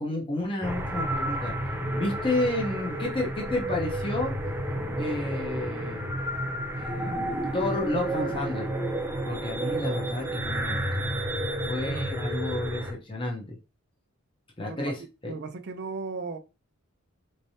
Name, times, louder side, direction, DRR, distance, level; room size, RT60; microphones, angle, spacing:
voice 1, 0.0-1.5 1.9-4.3 5.0-6.2 6.8-8.7 9.2-11.1 11.7-13.6 14.6-15.3, left 1 dB, 25° left, 0.8 m, -31 dB
sound 1, 0.6-12.9, right 1 dB, 10° right, 0.7 m, -31 dB
voice 2, 15.2-16.4, right 4 dB, 55° right, 0.5 m, -36 dB
4.2 x 3.2 x 2.7 m
head